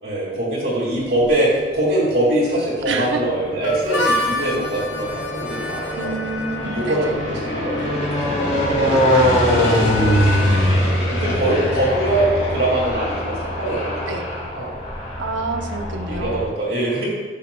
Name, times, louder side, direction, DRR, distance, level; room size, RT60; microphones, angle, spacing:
voice 1, 0.0-6.1 6.6-10.6 11.1-12.3 12.5-14.7 15.2-15.3 16.1-17.0, right 1 dB, 65° right, -7 dB, 2.2 m, -23 dB
sound 1, 0.9-1.7 2.4-16.5, equal, 40° left, 2.3 m, -23 dB
voice 2, 2.9-3.2 6.0-7.2 9.8-10.8 14.1-14.3 15.2-16.4, right 3 dB, 90° right, 4 dB, 0.8 m, -28 dB
Harmonica, 3.6-13.2, left 2 dB, 85° left, 0.9 m, -30 dB
12.5 x 6.7 x 2.3 m, 1.4 s
head